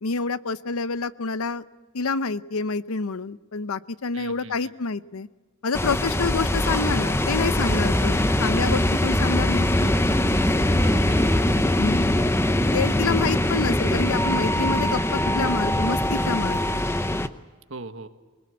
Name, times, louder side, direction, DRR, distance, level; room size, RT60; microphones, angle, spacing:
voice 1, 0.0-1.6 1.9-5.3 5.6-9.9 11.8-12.1 12.7-16.8, left 4 dB, 90° left, 15 dB, 0.7 m, -28 dB
voice 2, 4.1-4.7 10.8-11.6 13.4-13.5 17.7-18.1, right 3 dB, 65° right, 8 dB, 1.5 m, -40 dB
sound 1, 5.7-17.3, left 1 dB, 10° left, 0.7 m, -22 dB
24.0 x 21.0 x 8.4 m, 1.3 s
head